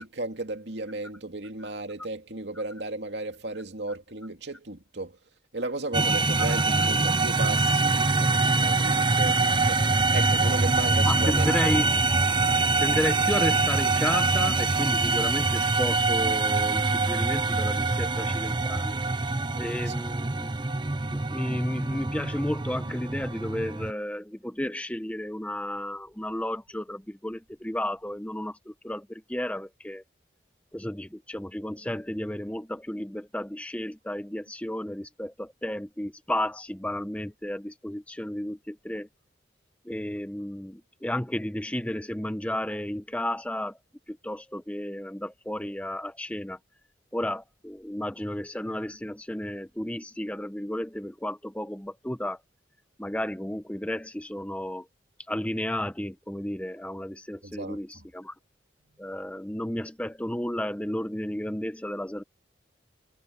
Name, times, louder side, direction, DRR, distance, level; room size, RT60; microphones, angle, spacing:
voice 1, 0.0-5.2 5.5-11.5 19.9-20.0 57.4-58.1, right 2 dB, 65° right, 2.6 m, -35 dB
sound 1, 5.9-23.9, right 3 dB, 25° right, 0.7 m, -24 dB
voice 2, 11.0-11.9 12.2-12.4 12.8-19.0 19.6-20.5 21.1-30.0 30.7-39.1 39.8-43.8 44.1-46.6 47.1-52.4 53.0-54.9 55.3-58.3 59.0-62.2, left 1 dB, 5° left, 0.8 m, -32 dB
head